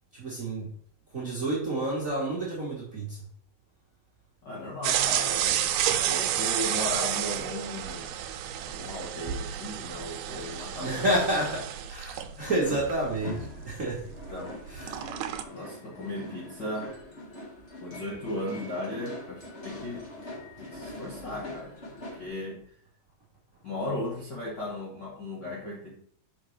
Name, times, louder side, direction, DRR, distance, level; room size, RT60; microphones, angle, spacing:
voice 1, 0.1-0.7 1.1-3.2 10.8-13.4 13.6-14.0 14.7-15.0, right 1 dB, 35° right, -5 dB, 1.3 m, -29 dB
voice 2, 4.4-5.7 6.1-8.2 8.6-11.2 14.0-14.6 15.5-16.9 17.8-20.1 20.6-21.7 22.2-22.6 23.6-26.0, left 1 dB, 55° left, -5 dB, 1.2 m, -36 dB
sound 1, 4.8-14.4 14.7-15.4, right 10 dB, 85° right, 2.2 m, -30 dB
sound 2, 12.4-22.3, left 1 dB, 35° left, 1.1 m, -43 dB
5.9 x 5.7 x 3.2 m, 0.62 s
omnidirectional pair, 3.7 m